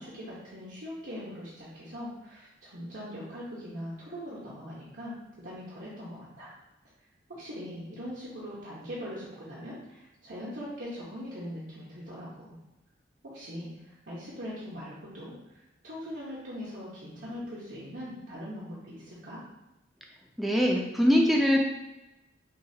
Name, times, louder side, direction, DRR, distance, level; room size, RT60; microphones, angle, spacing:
voice 1, 0.0-6.5 7.3-12.5 13.2-19.4, equal, 80° right, -8 dB, 1.1 m, -41 dB
voice 2, 20.4-21.6, equal, ahead, -1 dB, 0.6 m, -22 dB
6.5 x 2.4 x 2.8 m, 0.96 s
head